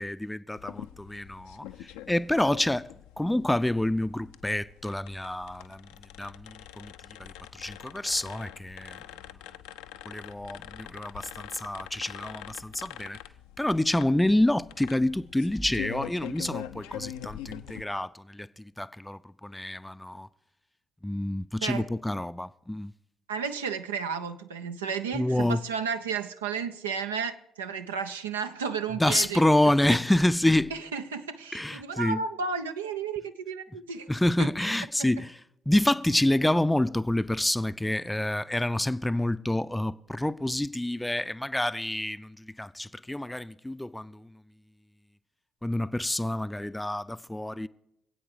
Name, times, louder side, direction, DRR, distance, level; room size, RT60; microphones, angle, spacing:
voice 1, 0.0-2.9 3.2-5.9 6.2-6.9 7.2-9.0 10.1-13.2 13.6-20.3 21.0-22.9 25.1-25.6 29.0-30.7 31.5-32.2 34.1-35.4 35.7-44.4 45.6-47.7, left 1 dB, 10° left, 0.5 m, -28 dB
sound 1, 0.6-17.8, left 11 dB, 70° left, 0.5 m, -44 dB
voice 2, 23.3-29.4 29.9-30.0 30.7-34.1 34.4-34.5 35.0-35.1, right 6 dB, 80° right, 0.6 m, -33 dB
25.5 x 8.7 x 4.9 m
figure-of-eight pair, 45°, 0 cm